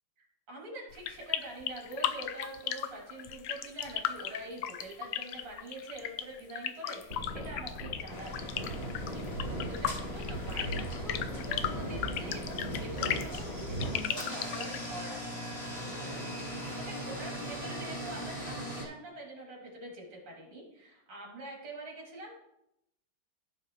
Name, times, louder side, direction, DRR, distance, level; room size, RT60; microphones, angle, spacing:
voice 1, 0.2-15.5 16.0-16.3 16.5-22.3, right 1 dB, 80° right, -3 dB, 3.9 m, -45 dB
sound 1, 0.9-14.9, left 11 dB, 70° left, 1.2 m, -36 dB
sound 2, 7.1-14.0, right 1 dB, 20° right, 3.2 m, -37 dB
sound 3, 8.1-18.8, equal, 20° left, 2.9 m, -41 dB
15.5 x 5.7 x 3.1 m, 0.84 s
omnidirectional pair, 2.4 m